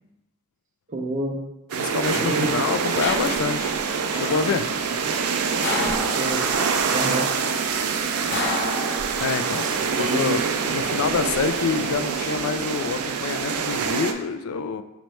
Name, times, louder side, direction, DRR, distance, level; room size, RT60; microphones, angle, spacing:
voice 1, 0.9-1.4 2.1-2.6 4.9-5.0 6.1-6.5 6.9-7.3 9.6-10.4, right 1 dB, 35° right, 2 dB, 0.6 m, -28 dB
voice 2, 1.7-3.8 4.1-4.7 9.2-9.7 10.0-14.8, left 6 dB, 65° left, 10 dB, 0.3 m, -27 dB
sound 1, 1.7-14.1, right 6 dB, 85° right, 0.4 m, -25 dB
sound 2, 3.0-3.8 5.6-6.6 8.3-9.5 10.8-11.4, left 2 dB, 50° left, 0.7 m, -29 dB
sound 3, 4.1-11.9, left 2 dB, 85° left, 0.8 m, -40 dB
5.1 x 3.1 x 3.1 m, 0.93 s
head